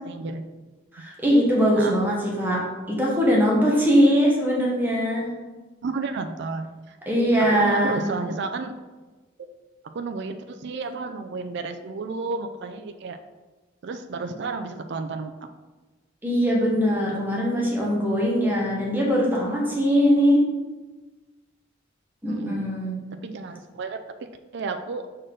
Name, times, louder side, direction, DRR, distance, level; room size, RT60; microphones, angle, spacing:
voice 1, 0.0-0.4 1.7-2.0 5.8-7.0 7.5-8.8 9.9-13.2 13.8-15.3 22.3-22.6 23.2-24.2 24.5-25.1, right 4 dB, 60° right, 8 dB, 0.4 m, -31 dB
voice 2, 0.9-2.6 2.9-5.3 7.1-8.1 16.2-20.4 22.2-23.0, equal, 10° right, -4 dB, 1.2 m, -21 dB
6.4 x 4.4 x 3.8 m, 1.2 s
head